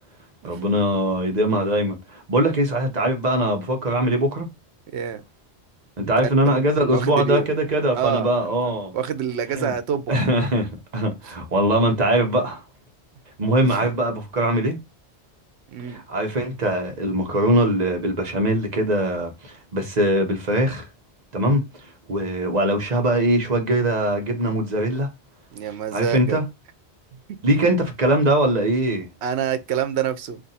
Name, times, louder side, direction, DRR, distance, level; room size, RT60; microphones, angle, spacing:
voice 1, 0.4-4.5 6.0-8.9 9.6-9.7 10.1-12.6 13.4-14.8 15.9-20.9 21.3-21.6 22.1-25.1 25.9-26.4 27.4-29.1, right 1 dB, 40° right, 0.9 m, -21 dB
voice 2, 6.2-6.6 6.9-7.5 7.9-10.2 11.2-11.3 13.6-13.9 14.4-14.5 15.7-16.0 25.5-26.4 27.3-27.4 29.2-30.4, right 8 dB, 80° right, 0.9 m, -27 dB
2.6 x 2.5 x 4.0 m
omnidirectional pair, 1.1 m